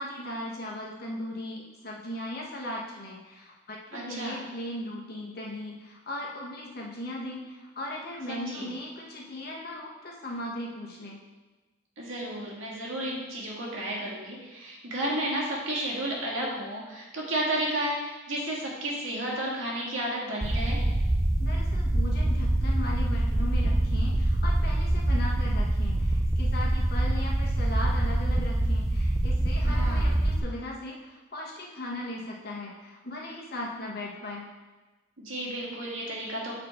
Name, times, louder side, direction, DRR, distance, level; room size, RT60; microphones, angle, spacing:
voice 1, 0.0-11.2 21.4-34.5, left 1 dB, 50° left, -2 dB, 1.3 m, -38 dB
voice 2, 3.9-4.4 8.3-8.7 12.0-20.8 29.6-30.1 35.2-36.5, right 1 dB, 80° right, -3 dB, 1.8 m, -32 dB
sound 1, 20.4-30.4, right 1 dB, 15° right, 0.4 m, -25 dB
7.1 x 4.4 x 4.4 m, 1.2 s
head